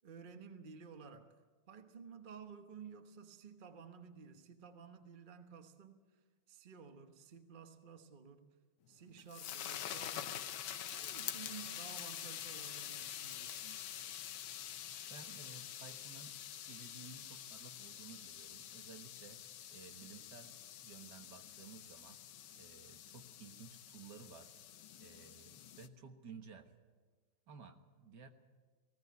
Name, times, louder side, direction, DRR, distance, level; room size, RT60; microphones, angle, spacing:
voice 1, 0.0-1.4 1.7-6.0 6.5-8.6 8.9-10.5 10.9-13.8, right 6 dB, 30° right, 1.0 m, -54 dB
sound 1, 8.9-25.9, left 10 dB, 80° left, 1.7 m, -47 dB
voice 2, 15.1-16.4 16.7-19.4 19.7-22.2 22.6-24.6 25.0-26.7 27.5-28.3, right 5 dB, 55° right, 1.9 m, -55 dB
19.0 x 17.0 x 9.5 m
omnidirectional pair, 2.2 m